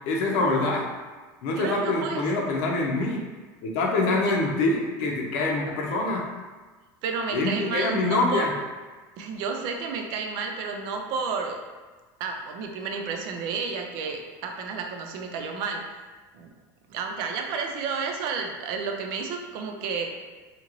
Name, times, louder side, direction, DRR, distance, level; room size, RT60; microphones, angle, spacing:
voice 1, 0.1-0.9 1.4-3.2 3.6-6.3 7.3-8.5, left 2 dB, 70° left, -1 dB, 0.6 m, -25 dB
voice 2, 1.6-2.2 4.3-4.4 7.0-8.5 9.2-11.6 12.2-15.9 16.3-16.5 16.9-20.1, right 5 dB, 60° right, 3 dB, 0.4 m, -31 dB
2.8 x 2.5 x 2.9 m, 1.3 s
cardioid pair, 155°, 9 cm